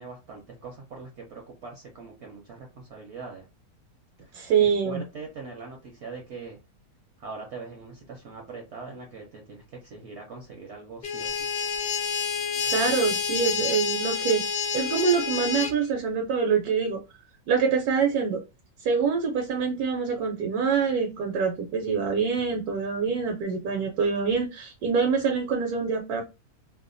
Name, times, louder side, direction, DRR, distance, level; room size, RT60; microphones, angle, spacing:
voice 1, 0.0-3.5 4.2-6.6 7.2-11.4, right 4 dB, 60° right, 1 dB, 0.7 m, -42 dB
voice 2, 4.3-5.0 12.6-14.4 14.7-17.0 17.5-18.4 18.8-26.2, right 6 dB, 80° right, 2 dB, 1.1 m, -25 dB
sound 1, 11.0-15.7, left 7 dB, 85° left, 0.5 m, -28 dB
2.7 x 2.2 x 2.5 m, 0.28 s
omnidirectional pair, 1.6 m